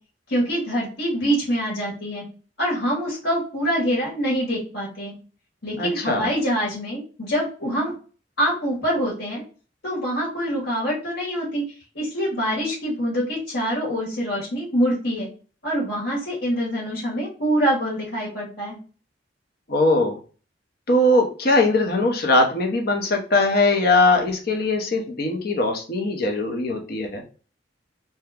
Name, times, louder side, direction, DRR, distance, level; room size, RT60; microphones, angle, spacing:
voice 1, 0.3-2.2 2.6-5.1 5.6-7.9 8.4-9.4 9.8-11.6 11.9-15.3 15.6-18.8, equal, 75° left, -6 dB, 1.6 m, -25 dB
voice 2, 5.8-6.3 19.7-20.2 20.9-27.2, left 2 dB, 55° left, 2 dB, 0.8 m, -20 dB
2.8 x 2.2 x 3.6 m, 0.38 s
head